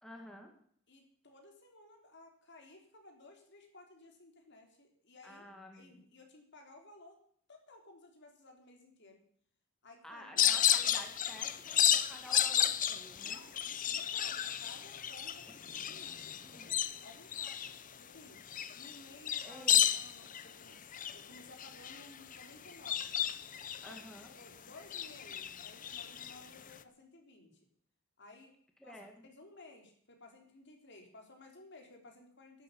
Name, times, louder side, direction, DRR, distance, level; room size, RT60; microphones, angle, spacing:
voice 1, 0.0-0.5 5.2-6.0 10.0-13.4 16.4-16.6 19.4-19.8 23.8-24.3 28.8-29.2, left 1 dB, ahead, 2 dB, 2.1 m, -51 dB
voice 2, 0.9-7.2 7.5-9.2 9.8-10.5 13.2-18.4 18.7-19.7 19.9-23.2 23.8-27.6 28.2-28.5 28.8-32.6, left 2 dB, 55° left, 3 dB, 3.5 m, -57 dB
sound 1, 10.4-24.5 24.8-26.7, left 10 dB, 40° left, 0.7 m, -33 dB
12.0 x 11.0 x 7.1 m, 0.62 s
head